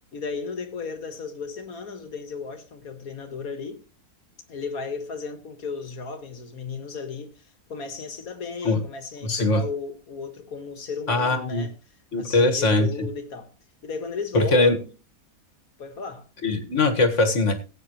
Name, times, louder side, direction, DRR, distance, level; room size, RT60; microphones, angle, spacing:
voice 1, 0.1-3.8 4.5-11.7 12.2-13.5 13.8-14.9 15.8-16.3, left 5 dB, 80° left, 2.0 m, -35 dB
voice 2, 9.2-9.6 11.1-11.7 12.1-12.9 14.3-14.8 16.4-17.6, left 2 dB, 55° left, 2.0 m, -21 dB
19.0 x 8.8 x 3.0 m
omnidirectional pair, 1.5 m